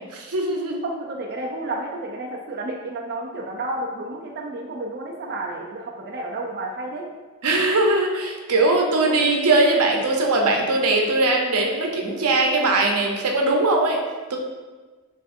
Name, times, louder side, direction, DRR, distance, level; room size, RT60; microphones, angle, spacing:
voice 1, 0.1-0.8 7.4-14.0 14.3-14.4, right 2 dB, 90° right, 1 dB, 0.6 m, -20 dB
voice 2, 0.8-7.0, right 2 dB, 45° right, -2 dB, 0.4 m, -31 dB
6.1 x 2.5 x 2.5 m, 1.3 s
head